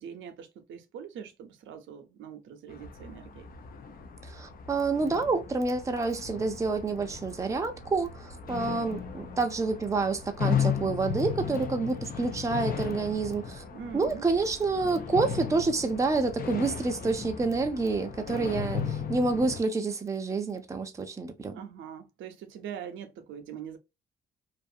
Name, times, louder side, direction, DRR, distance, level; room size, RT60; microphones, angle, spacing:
voice 1, 0.0-3.5 13.7-14.2 21.5-23.8, right 8 dB, 75° right, 0.6 m, -43 dB
sound 1, 2.7-19.6, left 7 dB, 45° left, 0.5 m, -36 dB
voice 2, 4.2-13.6 13.9-21.6, right 3 dB, 15° right, 0.5 m, -28 dB
2.5 x 2.3 x 2.6 m
cardioid pair, 90°, 20 cm